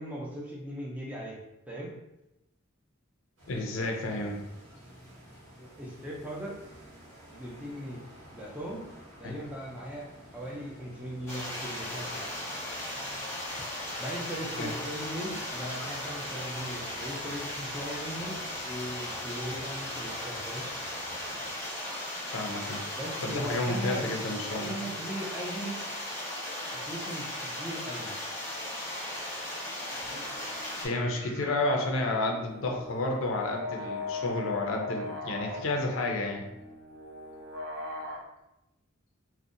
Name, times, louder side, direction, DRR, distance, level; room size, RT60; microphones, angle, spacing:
voice 1, 0.0-1.4 1.7-1.9 5.6-6.6 7.3-8.0 8.3-8.9 9.2-12.2 14.0-20.7 22.9-24.1 24.4-25.8 26.7-28.2, equal, 5° right, -4 dB, 0.4 m, -38 dB
sound 1, 3.4-21.6, equal, 80° right, 0.9 m, -52 dB
voice 2, 3.5-4.4 9.2-9.4 14.6-14.7 22.3-22.8 23.2-24.7 30.5-36.4, left 2 dB, 70° left, 1 dB, 0.4 m, -31 dB
sound 2, 11.3-30.9, left 1 dB, 15° left, 0.7 m, -37 dB
sound 3, 29.9-38.2, left 2 dB, 60° right, 0.5 m, -40 dB
2.6 x 2.1 x 2.5 m, 0.89 s
head